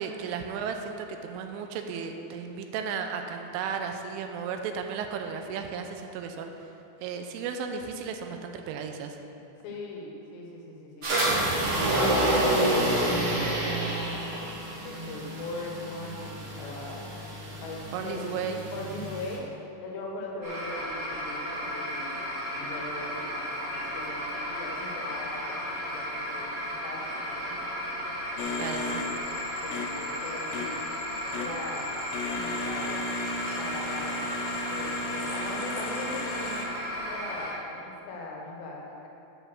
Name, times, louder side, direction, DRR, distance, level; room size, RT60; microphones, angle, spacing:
voice 1, 0.0-6.5 7.0-9.2 17.9-18.6 27.5-27.6 28.6-29.0, right 6 dB, 85° right, 5 dB, 3.1 m, -34 dB
voice 2, 9.6-11.7 12.0-13.8 14.8-17.1 17.6-18.4 18.7-19.4 19.8-27.6 28.4-29.2 29.6-30.9 31.4-31.9 32.3-33.0 33.6-34.2 34.7-36.7 37.0-39.1, left 2 dB, 65° left, -1 dB, 3.1 m, -40 dB
sound 1, 11.0-19.4, right 1 dB, 65° right, 1.2 m, -28 dB
sound 2, 20.4-37.5, equal, 45° right, 0.9 m, -34 dB
sound 3, 28.4-36.7, left 2 dB, 80° left, 2.6 m, -36 dB
13.0 x 5.2 x 6.3 m, 2.8 s
omnidirectional pair, 5.7 m